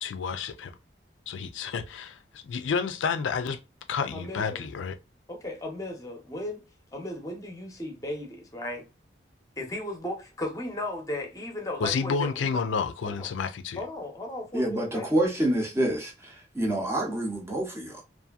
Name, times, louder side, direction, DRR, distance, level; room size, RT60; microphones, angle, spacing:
voice 1, 0.0-0.7 1.3-3.6 3.9-5.0 11.8-13.8, left 5 dB, 90° left, 0.4 m, -30 dB
voice 2, 4.1-4.6 5.3-6.6 6.9-8.8 9.6-12.6 13.0-13.3 13.8-15.1, left 1 dB, 20° left, 0.7 m, -36 dB
voice 3, 14.5-18.0, right 1 dB, 15° right, 0.7 m, -27 dB
2.7 x 2.5 x 2.3 m
head